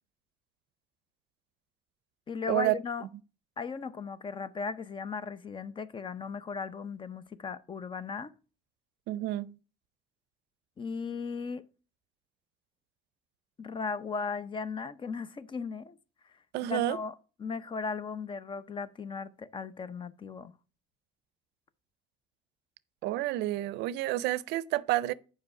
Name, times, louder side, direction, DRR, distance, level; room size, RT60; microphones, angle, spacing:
voice 1, 2.3-3.1 3.6-8.3 10.8-11.6 13.6-16.0 16.7-20.5, left 5 dB, 30° left, 0.6 m, -37 dB
voice 2, 9.1-9.6 16.5-17.0 23.0-25.1, right 15 dB, 85° right, 0.5 m, -29 dB
7.6 x 5.2 x 4.7 m
cardioid pair, 110°, 17 cm